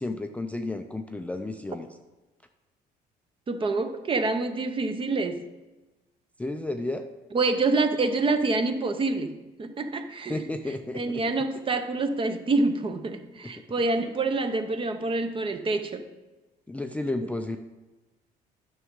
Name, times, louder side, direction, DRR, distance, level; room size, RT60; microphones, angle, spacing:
voice 1, 0.0-1.9 6.4-7.1 10.3-11.2 13.4-13.5 16.7-17.6, left 2 dB, 10° left, 5 dB, 0.4 m, -32 dB
voice 2, 3.5-5.4 7.3-10.4 10.9-16.1, right 3 dB, 30° right, 8 dB, 0.7 m, -27 dB
9.7 x 6.2 x 3.7 m, 1.1 s
cardioid pair, 110°, 17 cm